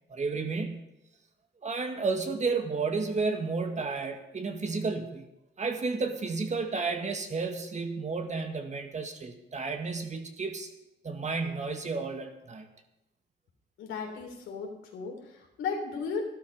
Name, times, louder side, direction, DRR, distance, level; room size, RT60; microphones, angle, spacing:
voice 1, 0.1-0.8 1.6-5.3 5.6-10.7 11.0-12.7, right 4 dB, 35° right, 5 dB, 1.9 m, -32 dB
voice 2, 13.8-16.2, left 5 dB, 80° left, 1 dB, 3.7 m, -35 dB
13.0 x 12.0 x 5.6 m, 0.90 s
cardioid pair, 90°, 20 cm